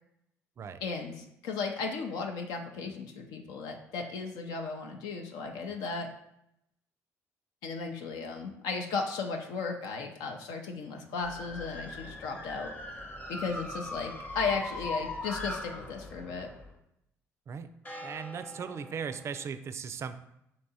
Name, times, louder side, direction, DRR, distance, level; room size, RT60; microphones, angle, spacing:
voice 1, 0.8-6.1 7.6-12.7 13.3-16.5, left 4 dB, 80° left, 3 dB, 0.5 m, -35 dB
sound 1, 11.2-16.7 17.8-19.5, left 2 dB, 25° left, 0.8 m, -40 dB
voice 2, 18.0-20.2, right 6 dB, 45° right, 11 dB, 0.4 m, -38 dB
3.4 x 2.9 x 4.1 m, 0.79 s
supercardioid pair, 65°, 6 cm